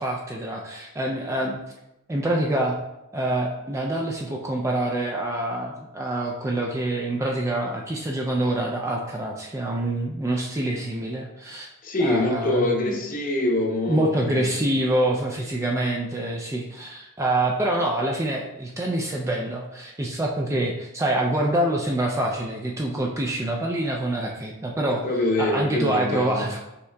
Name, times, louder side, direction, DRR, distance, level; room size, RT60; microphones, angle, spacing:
voice 1, 0.0-1.6 2.1-2.8 3.1-11.7 12.0-13.0 13.9-25.0 25.4-26.6, right 1 dB, 15° right, 0 dB, 0.3 m, -26 dB
voice 2, 11.8-14.6 24.9-26.5, left 1 dB, 40° left, 0 dB, 0.7 m, -25 dB
5.6 x 3.6 x 2.2 m, 0.92 s
head